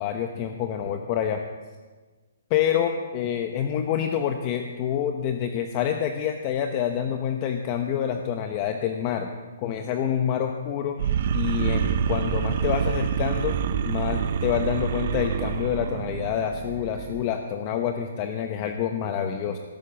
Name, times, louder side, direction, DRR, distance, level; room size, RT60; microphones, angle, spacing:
voice 1, 0.0-1.4 2.5-9.3 9.6-11.0 11.3-13.6 13.8-19.6, left 9 dB, 30° left, 5 dB, 0.9 m, -27 dB
sound 1, 11.0-17.3, right 8 dB, 45° right, 0.7 m, -27 dB
17.0 x 8.5 x 7.1 m, 1.4 s
hypercardioid pair, 160°, 0 cm